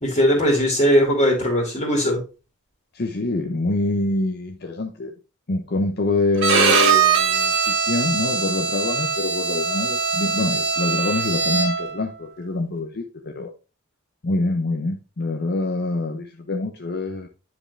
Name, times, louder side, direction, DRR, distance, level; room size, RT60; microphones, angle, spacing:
voice 1, 0.0-2.2, equal, 30° left, 2.3 m, -19 dB
voice 2, 2.9-5.1 5.5-13.5 14.2-17.3, left 2 dB, 50° left, 0.8 m, -25 dB
Bowed string instrument, 6.4-12.0, right 5 dB, 60° right, 1.3 m, -21 dB
9.5 x 4.9 x 3.2 m
head